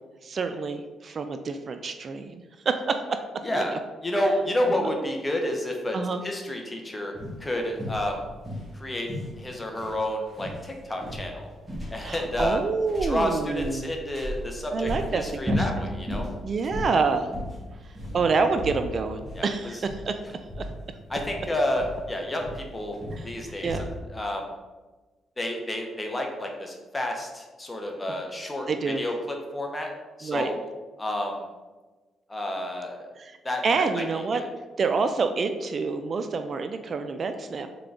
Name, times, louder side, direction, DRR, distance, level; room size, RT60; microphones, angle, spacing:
voice 1, 0.2-3.2 3.5-3.8 4.7-4.9 5.9-6.2 12.0-13.9 14.7-15.7 16.4-17.3 18.1-20.2 20.6-20.7 23.6-23.9 28.7-29.0 30.2-30.5 33.2-33.4 33.6-34.4 34.8-37.7, right 4 dB, 45° right, 8 dB, 0.3 m, -27 dB
voice 2, 3.4-3.7 4.0-6.0 6.2-7.1 7.4-8.3 8.7-9.1 9.4-11.5 11.9-12.6 13.0-16.3 19.4-19.8 21.1-23.0 23.2-24.5 25.4-29.9 30.2-30.5 31.0-31.4 32.3-33.1 33.4-34.5, left 1 dB, 20° left, 2 dB, 0.8 m, -30 dB
sound 1, 7.1-24.0, equal, 10° right, 1.5 m, -35 dB
3.9 x 3.7 x 3.4 m, 1.2 s
cardioid pair, 90°, 0 cm